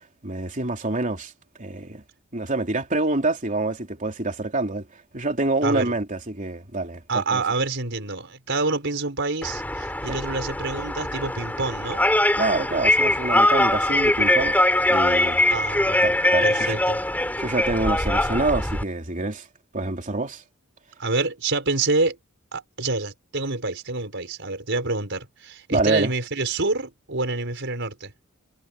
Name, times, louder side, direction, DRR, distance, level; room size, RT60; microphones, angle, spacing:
voice 1, 0.2-1.3 1.6-2.0 2.3-4.9 5.1-7.4 10.1-10.2 12.4-14.6 14.9-15.4 16.0-16.8 17.4-19.5 19.7-20.4 25.7-26.1, right 2 dB, 40° right, 3.3 m, -26 dB
voice 2, 5.6-5.9 7.1-12.1 15.5-16.2 16.4-17.0 21.0-22.2 22.5-28.1, right 3 dB, 60° right, 5.5 m, -27 dB
sound 1, 9.4-18.8, left 1 dB, 10° left, 6.3 m, -22 dB
head